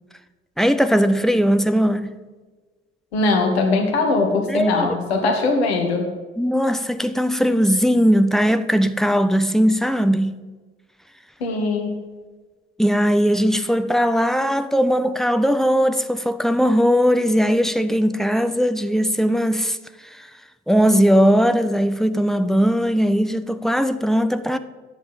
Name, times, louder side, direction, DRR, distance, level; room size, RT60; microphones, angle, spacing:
voice 1, 0.6-2.1 4.5-4.9 6.4-10.4 12.8-19.8 20.1-20.3 20.7-24.6, equal, ahead, 0.5 m, -19 dB
voice 2, 3.1-6.1 11.4-12.0, left 3 dB, 75° left, 1.1 m, -20 dB
8.9 x 6.0 x 7.2 m
figure-of-eight pair, 40°, 32 cm